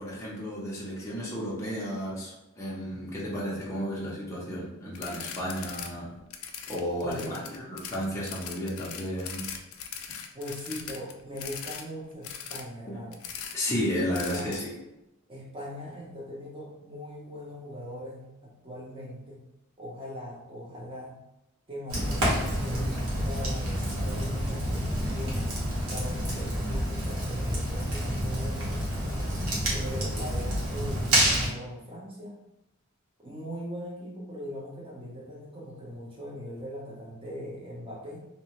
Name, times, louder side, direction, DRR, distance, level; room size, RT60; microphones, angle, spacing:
voice 1, 0.0-6.1 6.7-9.6 12.9-13.0 13.5-14.7, equal, 15° left, -7 dB, 0.5 m, -33 dB
sound 1, 5.0-5.9 6.2-11.8 12.2-12.6 13.1-13.6 14.1-14.6, left 8 dB, 70° left, 0.3 m, -40 dB
voice 2, 6.9-7.4 10.1-13.2 14.3-14.5 15.3-19.4 19.8-21.2 21.7-25.4 25.9-29.3 29.7-32.4 33.2-38.2, equal, 25° right, -4 dB, 0.8 m, -40 dB
Fire, 21.9-31.5, equal, 90° right, 0.9 m, -28 dB
2.7 x 2.1 x 2.9 m, 0.93 s
head